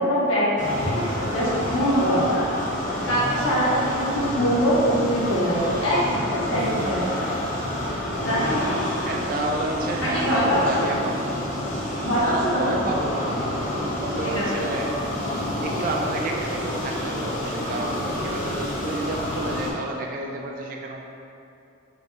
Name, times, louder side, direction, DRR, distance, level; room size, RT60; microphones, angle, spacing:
voice 1, 0.0-2.5 3.1-7.3 8.2-8.7 10.0-10.9 12.0-12.8 14.3-14.4, equal, 90° left, -8 dB, 1.1 m, -23 dB
sound 1, 0.6-19.7, left 1 dB, 40° left, 0.6 m, -28 dB
voice 2, 9.1-11.2 12.2-13.4 14.0-14.9 15.6-21.0, right 2 dB, 45° right, 1 dB, 0.3 m, -30 dB
4.6 x 2.9 x 2.3 m, 2.7 s
head